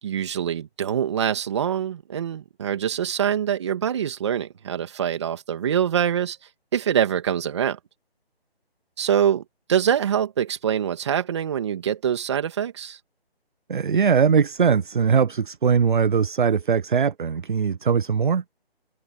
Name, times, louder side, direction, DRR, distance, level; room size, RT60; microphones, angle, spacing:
voice 1, 0.0-6.4 6.7-7.8 9.0-9.4 9.7-13.0, right 9 dB, 25° right, 2.6 m, -24 dB
voice 2, 13.7-18.4, right 6 dB, 50° right, 0.5 m, -20 dB
figure-of-eight pair, 165°, 32 cm